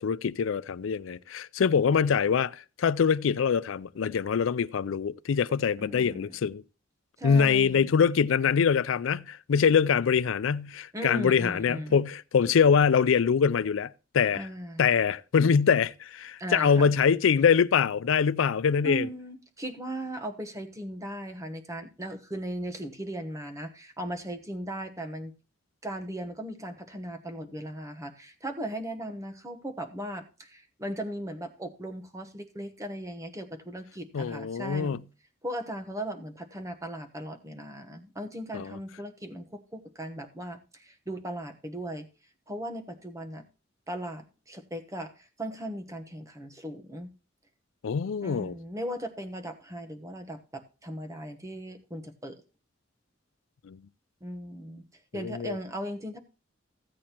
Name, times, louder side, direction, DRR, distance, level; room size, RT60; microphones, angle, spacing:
voice 1, 0.0-6.6 7.2-14.5 14.8-19.1 34.1-35.0 38.5-38.8 47.8-48.5 53.6-53.8 55.1-55.6, left 6 dB, 85° left, 0.4 m, -24 dB
voice 2, 5.8-6.4 7.2-7.9 10.9-12.0 14.3-14.8 16.4-16.9 18.8-25.3 25.8-35.0 35.4-42.1 42.5-43.4 43.9-47.1 48.2-52.4 54.2-54.8 55.1-56.2, right 1 dB, 15° right, 1.1 m, -37 dB
15.5 x 8.6 x 3.0 m
head